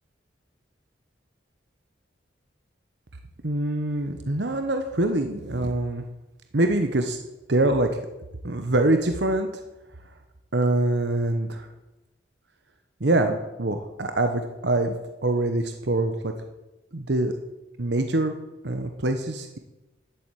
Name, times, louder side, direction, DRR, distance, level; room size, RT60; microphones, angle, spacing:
voice 1, 3.4-6.0 6.5-7.2 7.5-7.9 8.4-9.5 10.5-11.7 13.0-14.9 15.2-16.3 16.9-17.3 17.8-18.3 18.6-19.6, right 2 dB, 60° right, 6 dB, 1.1 m, -24 dB
12.0 x 8.1 x 9.0 m, 1.0 s
head